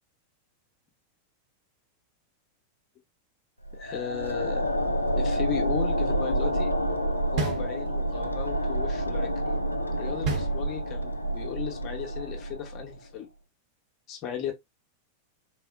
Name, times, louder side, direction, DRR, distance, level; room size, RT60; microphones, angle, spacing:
sound 1, 3.6-13.0, equal, 85° left, 0.4 m, -28 dB
voice 1, 3.7-4.7 5.2-6.7 7.3-9.3 10.0-13.3 14.1-14.5, left 10 dB, 35° left, 0.9 m, -36 dB
sound 2, 7.4-8.3 10.2-11.2, right 5 dB, 40° right, 1.0 m, -32 dB
3.7 x 2.3 x 2.4 m
figure-of-eight pair, 90°, 0 cm